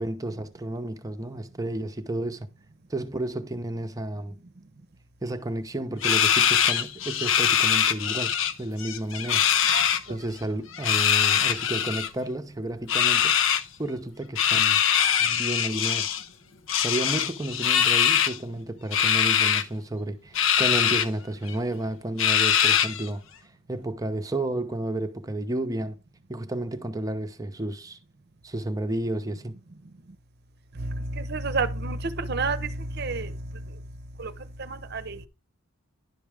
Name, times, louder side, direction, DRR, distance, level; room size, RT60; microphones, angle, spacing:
voice 1, 0.0-2.5 2.9-4.4 5.2-8.3 8.6-9.4 10.1-13.3 13.8-14.8 15.2-16.2 16.8-26.0 26.3-28.0 28.4-29.6, right 1 dB, 15° right, 0.7 m, -32 dB
sound 1, 6.0-8.5 8.8-10.0 10.7-12.1 12.9-13.6 14.4-16.2 16.7-18.4 18.9-19.6 20.3-21.1 21.5-21.6 22.2-23.1, left 9 dB, 65° left, 0.6 m, -22 dB
voice 2, 9.7-10.2 30.8-33.6 34.2-34.3 34.6-35.3, right 3 dB, 50° right, 0.7 m, -30 dB
10.5 x 6.1 x 3.4 m
head